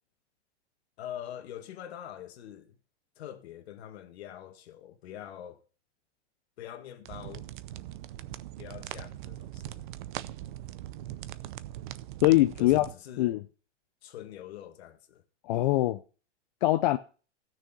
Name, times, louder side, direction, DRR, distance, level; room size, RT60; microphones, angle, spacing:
voice 1, 1.0-2.8 3.2-5.6 6.6-7.5 8.6-9.9 12.6-13.4 14.0-15.2, left 10 dB, 60° left, 1.7 m, -44 dB
sound 1, 7.0-12.9, right 14 dB, 45° right, 0.6 m, -41 dB
voice 2, 12.2-12.9 13.2-13.4 15.4-16.0 16.6-17.0, left 17 dB, 40° left, 0.5 m, -23 dB
14.0 x 6.4 x 5.3 m
hypercardioid pair, 150°, 35 cm